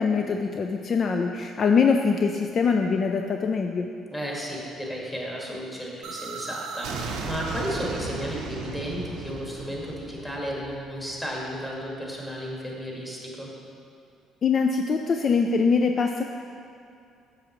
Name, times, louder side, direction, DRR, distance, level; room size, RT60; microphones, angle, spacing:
voice 1, 0.0-3.9 14.4-16.2, left 5 dB, 50° left, 4 dB, 0.3 m, -23 dB
voice 2, 4.1-13.5, equal, 10° left, -3 dB, 1.7 m, -33 dB
sound 1, 6.0-11.8, right 4 dB, 80° right, 0.6 m, -36 dB
7.3 x 6.2 x 3.0 m, 2.4 s
supercardioid pair, 75°, 0 cm